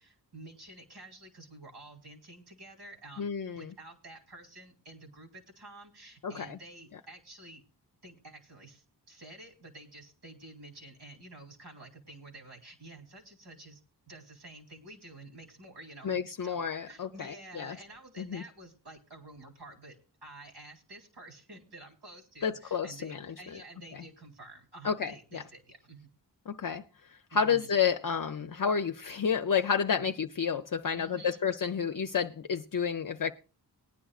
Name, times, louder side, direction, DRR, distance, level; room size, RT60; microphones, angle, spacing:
voice 1, 0.0-3.3 3.5-7.6 8.0-13.8 14.1-20.0 20.2-26.1 27.3-27.7 30.0-30.1 30.9-31.4, right 2 dB, 80° right, 2.6 m, -50 dB
voice 2, 3.2-3.7 6.2-6.6 16.0-17.8 18.2-18.4 22.4-23.4 23.9-24.0 24.8-25.4 26.5-26.8 27.3-33.3, left 6 dB, 55° left, 0.6 m, -30 dB
20.0 x 10.0 x 2.4 m
wide cardioid pair, 80°, 40 cm